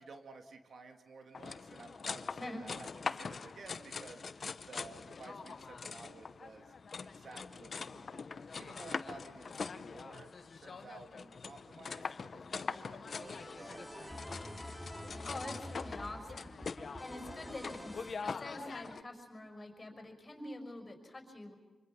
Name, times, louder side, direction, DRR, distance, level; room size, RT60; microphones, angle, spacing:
voice 1, 0.0-6.7 7.0-8.2 8.5-14.8, right 3 dB, 60° right, 5 dB, 2.1 m, -54 dB
sound 1, 1.3-19.0, left 5 dB, 50° left, 0.7 m, -43 dB
sound 2, 13.1-18.1, equal, 5° right, 2.8 m, -47 dB
voice 2, 15.2-16.5 17.0-21.5, left 1 dB, 25° left, 5 dB, 5.6 m, -46 dB
25.5 x 25.0 x 6.1 m, 1.2 s
cardioid pair, 95°, 0 cm